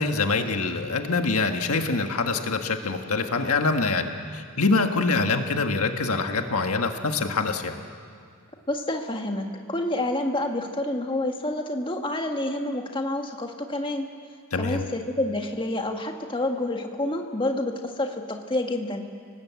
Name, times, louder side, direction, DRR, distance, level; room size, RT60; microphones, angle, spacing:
voice 1, 0.0-7.8 14.5-14.8, left 3 dB, 75° left, 5 dB, 1.5 m, -25 dB
voice 2, 8.7-14.1 14.6-19.1, left 1 dB, 20° left, 3 dB, 1.7 m, -28 dB
29.5 x 19.0 x 8.3 m, 2.1 s
head